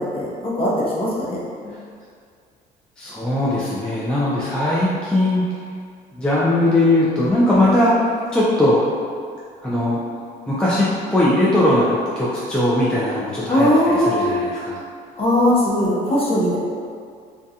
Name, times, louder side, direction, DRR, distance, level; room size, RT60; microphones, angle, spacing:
voice 1, 0.1-1.4 13.5-14.3 15.2-16.6, left 1 dB, 35° left, -6 dB, 0.7 m, -19 dB
voice 2, 3.0-5.5 6.2-7.9 8.3-8.8 9.6-10.0 10.5-14.8, left 1 dB, 5° left, -8 dB, 0.4 m, -19 dB
2.4 x 2.2 x 2.7 m, 2.2 s
cardioid pair, 110°, 17 cm